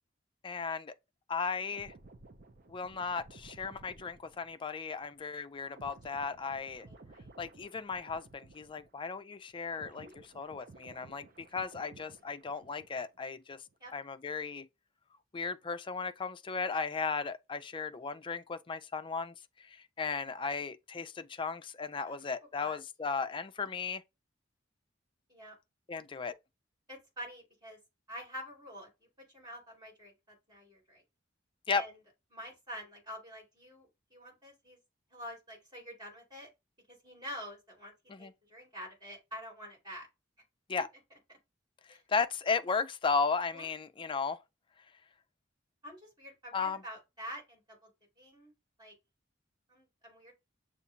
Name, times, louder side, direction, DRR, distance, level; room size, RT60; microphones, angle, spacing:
voice 1, 0.4-0.9 1.3-1.9 2.7-6.9 7.4-10.1 10.4-11.3 11.5-13.6 13.9-14.7 15.3-19.3 19.6-24.0 25.9-26.3 31.7-31.8 38.1-38.3 40.7-40.9 41.9-44.4 46.5-46.8, left 5 dB, 25° left, 0.4 m, -35 dB
sound 1, 1.7-9.2 9.5-13.2 13.5-13.7, right 3 dB, 50° right, 0.6 m, -56 dB
voice 2, 6.8-7.3 9.7-10.1 13.8-13.9 22.1-22.3 22.6-22.8 25.3-25.6 26.9-27.8 28.1-31.0 31.7-32.0 32.3-34.8 35.1-36.5 36.9-40.1 41.3-41.4 41.9-42.0 43.5-43.7 45.8-47.9 48.2-48.5 48.8-48.9 49.7-50.3, equal, 25° right, 2.6 m, -47 dB
6.9 x 2.5 x 2.8 m
head